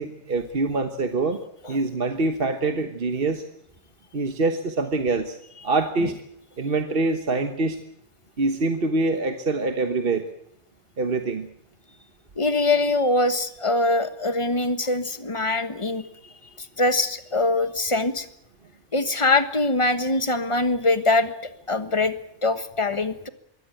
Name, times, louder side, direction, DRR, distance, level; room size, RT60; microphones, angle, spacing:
voice 1, 0.0-1.4 1.7-3.4 4.1-5.4 5.6-6.2 6.6-7.8 8.4-10.3 11.0-11.5, right 3 dB, 55° right, 7 dB, 1.4 m, -25 dB
voice 2, 12.4-16.1 16.8-18.2 18.9-21.3 21.7-22.1 22.4-23.3, left 2 dB, 25° left, 11 dB, 1.4 m, -23 dB
23.0 x 16.5 x 9.1 m, 0.75 s
omnidirectional pair, 1.2 m